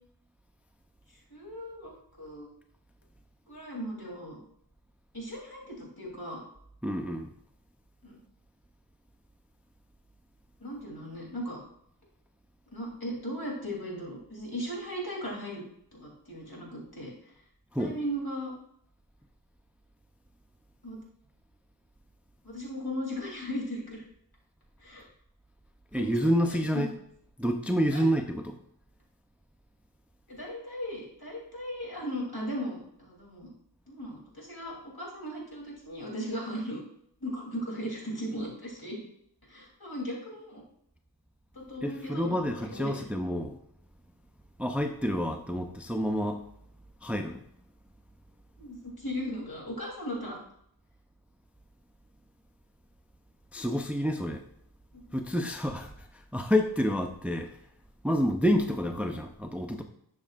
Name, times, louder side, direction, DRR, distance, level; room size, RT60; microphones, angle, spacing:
voice 1, 1.3-1.9 2.2-2.5 3.5-4.4 5.1-6.4 8.0-8.2 10.6-11.6 12.7-15.6 15.9-17.3 17.8-18.5 20.8-21.0 22.4-24.0 24.8-25.1 25.9-26.9 27.6-28.0 30.3-33.5 33.9-36.8 37.2-39.0 39.5-40.6 41.5-42.9 48.6-50.4 54.9-55.2, equal, 60° left, -2 dB, 3.3 m, -37 dB
voice 2, 6.8-7.3 17.7-18.0 25.9-26.9 27.4-28.6 41.8-43.6 44.6-46.4 47.0-47.4 53.5-54.5 55.1-57.6 58.0-59.8, equal, 5° right, 4 dB, 0.6 m, -28 dB
11.5 x 6.4 x 2.5 m, 0.70 s
wide cardioid pair, 50°, 43 cm